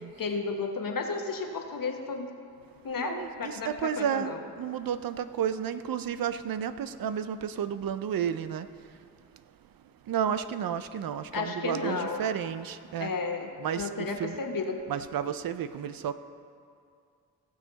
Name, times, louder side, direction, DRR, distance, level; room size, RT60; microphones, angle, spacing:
voice 1, 0.2-2.3 2.8-4.4 11.3-12.2 13.0-13.5 13.8-14.8, left 4 dB, 60° left, 3 dB, 1.3 m, -33 dB
voice 2, 3.0-8.7 10.0-13.1 13.6-14.4 14.9-16.1, right 8 dB, 65° right, 12 dB, 0.6 m, -32 dB
17.0 x 6.4 x 4.0 m, 2.3 s
supercardioid pair, 40°, 38 cm